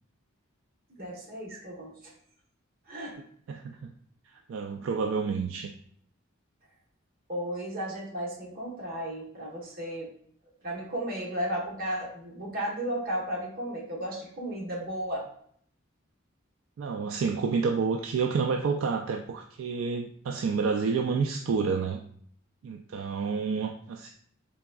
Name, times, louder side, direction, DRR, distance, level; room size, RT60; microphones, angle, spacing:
voice 1, 0.9-2.0 2.9-3.1 7.3-10.1 10.6-15.2, right 1 dB, 45° right, -3 dB, 1.1 m, -34 dB
voice 2, 3.5-3.9 4.5-5.7 16.8-22.0 22.6-24.1, right 5 dB, 70° right, 3 dB, 0.3 m, -29 dB
3.9 x 3.4 x 2.2 m, 0.64 s
head